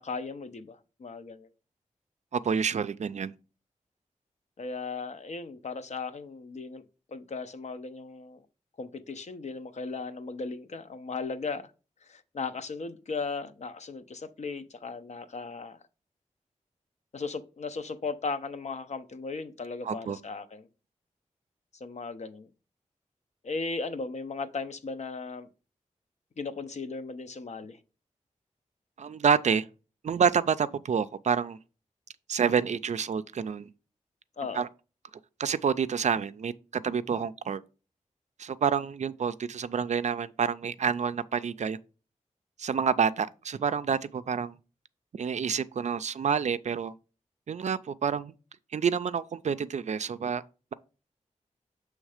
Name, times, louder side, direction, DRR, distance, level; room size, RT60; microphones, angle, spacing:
voice 1, 0.0-1.5 4.6-6.8 7.1-8.4 8.8-11.7 12.0-15.8 17.1-20.7 21.8-22.5 23.4-25.5 26.4-27.8 34.4-34.6, left 4 dB, 60° left, 0.6 m, -37 dB
voice 2, 2.3-3.3 19.8-20.2 29.0-29.7 30.0-31.6 32.3-33.7 34.5-34.7 35.4-36.5 36.8-37.6 38.4-41.8 42.6-44.6 45.1-46.9 47.5-48.3 48.7-50.4, right 6 dB, 60° right, 0.4 m, -28 dB
6.4 x 3.2 x 4.9 m
wide cardioid pair, 80°, 13 cm